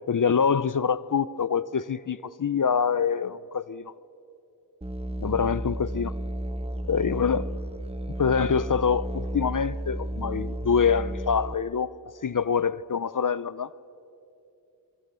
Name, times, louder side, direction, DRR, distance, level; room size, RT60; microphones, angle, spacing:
voice 1, 0.1-3.9 5.2-6.1 6.9-7.5 8.2-11.9 12.2-13.7, left 6 dB, 50° left, 0.5 m, -25 dB
Musical instrument, 4.8-11.5, right 1 dB, 15° right, 1.0 m, -33 dB
27.0 x 23.5 x 6.9 m
wide cardioid pair, 50°, 40 cm